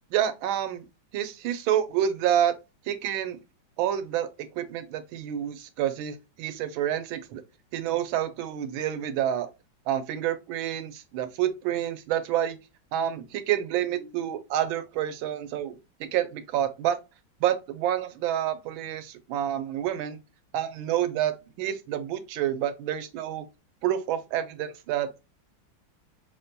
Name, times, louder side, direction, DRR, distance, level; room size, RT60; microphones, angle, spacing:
voice 1, 0.1-0.8 1.1-2.5 2.9-3.4 3.8-4.3 4.6-7.4 7.7-9.5 9.9-12.6 12.9-17.0 17.4-20.2 20.5-23.5 23.8-25.2, right 11 dB, 90° right, 1.4 m, -28 dB
5.6 x 2.2 x 2.6 m
omnidirectional pair, 2.1 m